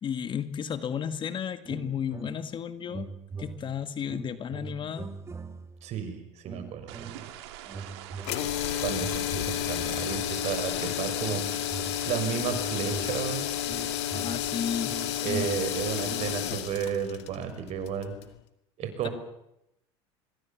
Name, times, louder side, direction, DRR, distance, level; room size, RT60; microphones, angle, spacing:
voice 1, 0.0-3.1 3.4-5.1 14.1-15.5, left 8 dB, 35° left, 11 dB, 1.9 m, -33 dB
sound 1, 1.7-2.6 2.9-5.9 6.5-7.3 7.7-10.8 11.3-16.6, right 5 dB, 20° right, 1.9 m, -42 dB
voice 2, 5.8-7.3 8.8-11.4 12.0-13.5 15.2-18.1 18.8-19.1, right 8 dB, 50° right, 9 dB, 6.0 m, -33 dB
sound 2, 6.9-16.3, right 12 dB, 75° right, 3.3 m, -45 dB
sound 3, 8.2-18.3, left 13 dB, 80° left, 2.3 m, -31 dB
25.5 x 22.0 x 7.4 m, 0.82 s
supercardioid pair, 95°, 14 cm